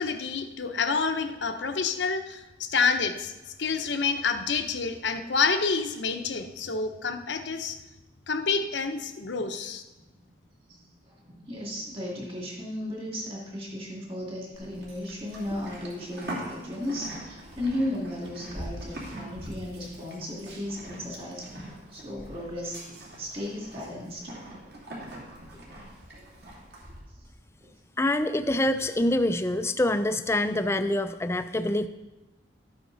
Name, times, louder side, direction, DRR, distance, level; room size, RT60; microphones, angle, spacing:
voice 1, 0.0-7.8 8.3-9.8, left 5 dB, 70° left, 7 dB, 0.8 m, -28 dB
voice 2, 11.2-21.5 21.9-22.8 23.2-24.4 27.6-27.7, left 1 dB, 30° right, -2 dB, 2.3 m, -35 dB
Livestock farm animals working animals, 14.5-27.0, right 1 dB, 55° right, 2.8 m, -42 dB
voice 3, 28.0-31.9, left 1 dB, 15° left, 10 dB, 0.4 m, -25 dB
12.5 x 9.2 x 4.0 m, 1.1 s
head